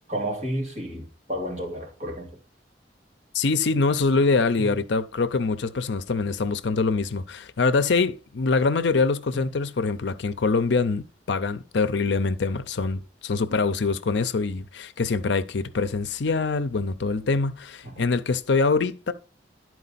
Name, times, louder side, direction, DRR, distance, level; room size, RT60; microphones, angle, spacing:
voice 1, 0.1-2.3 4.6-4.7 9.3-9.4 17.8-18.1, equal, 40° right, 2.5 m, -31 dB
voice 2, 3.3-19.1, left 4 dB, 70° left, 0.6 m, -24 dB
11.0 x 4.6 x 4.0 m
head